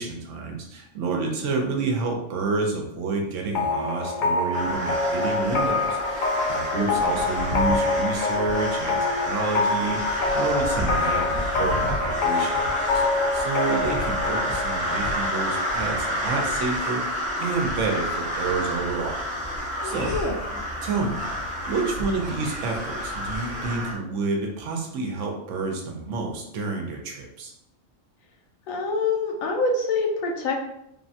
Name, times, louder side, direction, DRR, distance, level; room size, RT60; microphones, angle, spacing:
voice 1, 0.0-19.2 19.8-20.1 20.8-27.5, right 3 dB, 70° right, 2 dB, 0.9 m, -29 dB
sound 1, 3.5-17.1, left 3 dB, 65° left, 0.4 m, -26 dB
sound 2, 4.5-23.9, equal, 5° right, 0.7 m, -30 dB
voice 2, 6.7-7.2 19.8-20.4 28.7-30.6, left 3 dB, 90° left, 1 dB, 1.0 m, -26 dB
3.4 x 2.1 x 2.7 m, 0.79 s
omnidirectional pair, 1.4 m